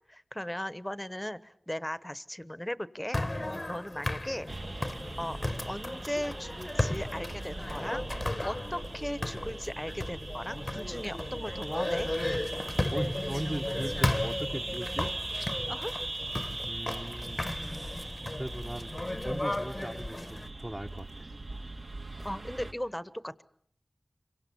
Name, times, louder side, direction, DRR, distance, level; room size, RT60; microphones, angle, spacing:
voice 1, 0.1-4.5 5.2-5.4 5.7-8.0 8.4-12.1 15.7-15.9 22.2-23.4, equal, 10° left, 16 dB, 1.0 m, -37 dB
sound 1, 3.1-20.5, left 1 dB, 30° left, 1.0 m, -35 dB
voice 2, 3.4-3.7 12.6-15.1 16.6-18.9 19.2-21.3, right 1 dB, 20° right, 2 dB, 1.0 m, -39 dB
sound 2, 4.5-22.7, right 2 dB, 85° right, 2.5 m, -41 dB
27.0 x 23.5 x 7.0 m, 0.63 s
wide cardioid pair, 70°, 0 cm